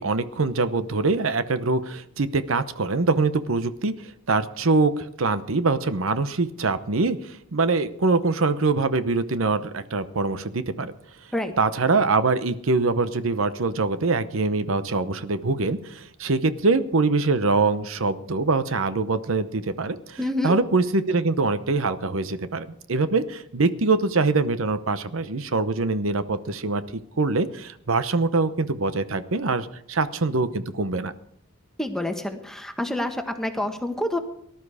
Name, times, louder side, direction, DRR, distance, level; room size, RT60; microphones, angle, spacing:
voice 1, 0.0-10.9 11.6-26.8 27.2-31.1, right 3 dB, 70° right, 12 dB, 0.8 m, -24 dB
voice 2, 20.2-20.5 31.8-34.2, left 1 dB, ahead, 6 dB, 1.4 m, -27 dB
18.5 x 12.0 x 4.9 m, 0.73 s
head